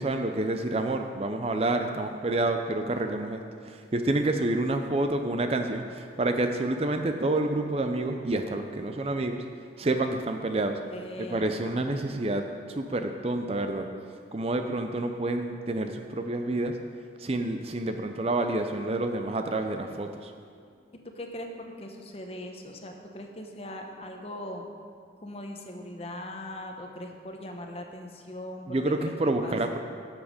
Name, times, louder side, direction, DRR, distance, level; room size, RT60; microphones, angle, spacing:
voice 1, 0.0-9.5 9.8-10.8 11.2-13.9 14.3-16.8 17.2-20.3 28.7-29.8, right 2 dB, 35° right, 6 dB, 0.5 m, -28 dB
voice 2, 10.9-11.5 21.1-24.6 25.2-29.1 29.4-29.6, left 1 dB, 35° left, 3 dB, 0.9 m, -40 dB
11.0 x 7.2 x 5.0 m, 2.2 s
head